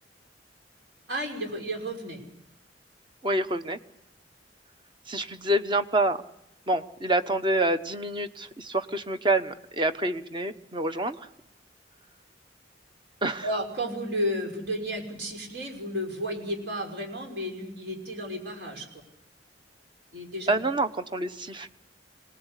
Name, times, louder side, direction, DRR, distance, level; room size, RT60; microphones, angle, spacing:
voice 1, 1.1-2.2 13.4-18.9 20.1-20.6, equal, 65° right, 2 dB, 5.7 m, -32 dB
voice 2, 3.2-3.8 5.1-6.2 6.7-11.3 13.2-13.5 20.5-21.7, right 2 dB, 25° right, 10 dB, 1.0 m, -27 dB
26.5 x 19.0 x 8.2 m, 0.84 s
head